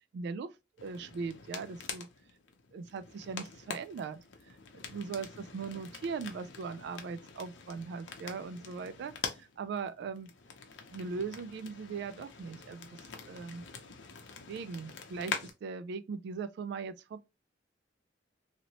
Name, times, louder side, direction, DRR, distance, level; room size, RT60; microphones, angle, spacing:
voice 1, 0.1-0.5 0.8-2.1 2.7-4.2 4.7-9.1 9.4-10.3 10.9-13.0 13.3-13.6 14.5-15.3 15.6-17.2, right 5 dB, 65° right, 0.3 m, -39 dB
sound 1, 0.8-15.5, left 5 dB, 70° left, 0.6 m, -45 dB
2.9 x 2.8 x 2.8 m
head